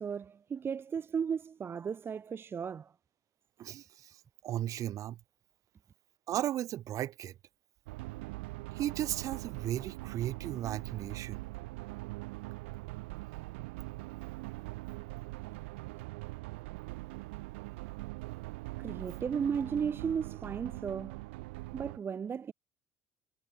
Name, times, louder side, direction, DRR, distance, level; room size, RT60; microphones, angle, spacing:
voice 1, 0.0-2.9 18.8-21.2 21.7-22.5, right 7 dB, 35° right, 0.9 m, -35 dB
voice 2, 3.6-4.1 4.4-5.2 6.3-7.3 8.7-11.4, right 12 dB, 60° right, 2.5 m, -35 dB
sound 1, 7.9-22.0, right 23 dB, 85° right, 4.2 m, -42 dB
supercardioid pair, 75°, 6 cm